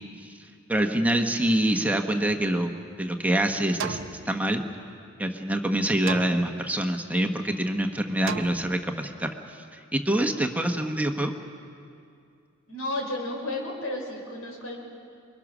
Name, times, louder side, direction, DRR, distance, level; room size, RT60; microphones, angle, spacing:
voice 1, 0.7-2.7 3.0-4.6 5.2-11.3, right 1 dB, 5° right, 4 dB, 1.1 m, -26 dB
sound 1, 2.3-3.2 3.8-5.1 6.1-7.0 8.3-9.2, right 6 dB, 65° right, 0.8 m, -38 dB
voice 2, 12.7-14.8, left 1 dB, 90° left, 1 dB, 4.8 m, -32 dB
28.0 x 22.0 x 6.2 m, 2.5 s
head